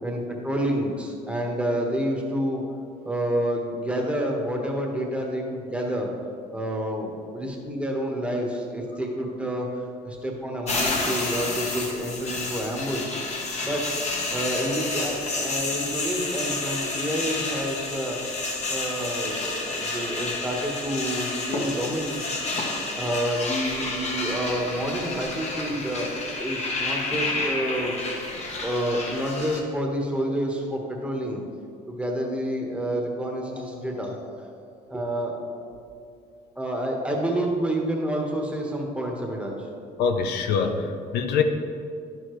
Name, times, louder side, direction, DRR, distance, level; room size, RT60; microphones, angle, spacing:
voice 1, 0.0-2.6 3.0-6.1 6.5-13.1 13.6-13.8 14.3-18.2 18.7-22.2 23.0-26.1 26.4-28.0 28.6-31.4 31.9-34.6 34.9-35.3 36.6-39.6, equal, 5° right, 0 dB, 1.3 m, -28 dB
sound 1, 10.7-29.6, left 2 dB, 40° left, 1.3 m, -30 dB
voice 2, 40.0-41.4, left 6 dB, 75° left, 6 dB, 0.6 m, -24 dB
10.0 x 6.9 x 3.2 m, 2.5 s
cardioid pair, 110°, 17 cm